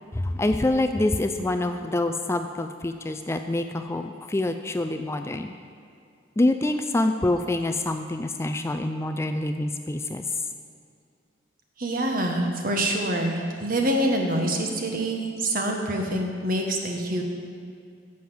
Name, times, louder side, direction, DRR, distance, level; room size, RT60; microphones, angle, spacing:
voice 1, 0.1-5.5 6.4-10.2, left 2 dB, 15° left, 7 dB, 0.4 m, -26 dB
voice 2, 11.8-17.2, right 1 dB, 50° right, 2 dB, 1.5 m, -26 dB
10.0 x 7.8 x 7.1 m, 2.4 s
head